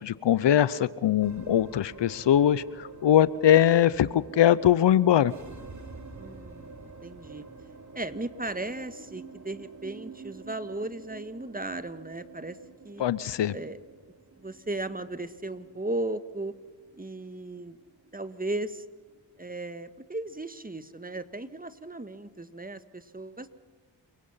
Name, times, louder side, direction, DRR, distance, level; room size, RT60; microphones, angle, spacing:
voice 1, 0.0-5.3 13.0-13.5, left 11 dB, 65° left, 19 dB, 0.8 m, -22 dB
sound 1, 1.2-19.7, right 4 dB, 35° right, 3.0 m, -48 dB
voice 2, 6.2-7.5 7.9-12.6 12.8-13.0 13.5-13.8 14.4-16.5 17.0-17.8 18.1-18.8 19.4-23.5, right 2 dB, 20° right, 12 dB, 1.6 m, -36 dB
28.5 x 17.5 x 5.7 m, 1.4 s
supercardioid pair, 45°, 46 cm